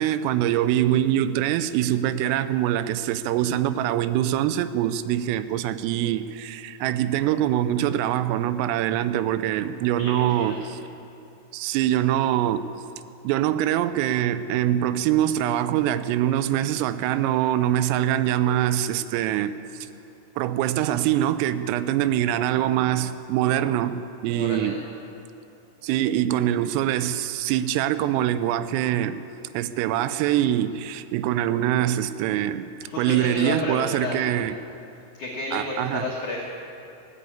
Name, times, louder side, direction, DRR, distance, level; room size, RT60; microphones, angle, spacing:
voice 1, 0.0-10.8 11.5-12.7 13.2-19.6 20.4-24.8 25.8-29.2 29.5-34.6 35.5-36.0, right 12 dB, 85° right, 3.2 m, -24 dB
voice 2, 10.0-10.7 24.3-24.8 32.8-34.2 35.2-36.4, left 3 dB, 75° left, 1.7 m, -31 dB
15.5 x 9.7 x 8.5 m
omnidirectional pair, 5.8 m